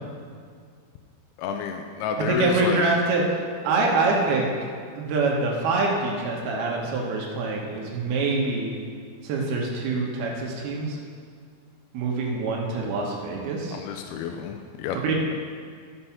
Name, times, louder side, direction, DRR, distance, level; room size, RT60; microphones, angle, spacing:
voice 1, 1.4-2.8 13.7-15.1, left 6 dB, 90° left, 4 dB, 2.6 m, -30 dB
voice 2, 2.2-4.5 5.0-8.7 9.2-11.0 11.9-13.8 15.0-15.1, right 3 dB, 85° right, -2 dB, 3.2 m, -25 dB
13.0 x 6.0 x 5.8 m, 2.1 s
omnidirectional pair, 4.4 m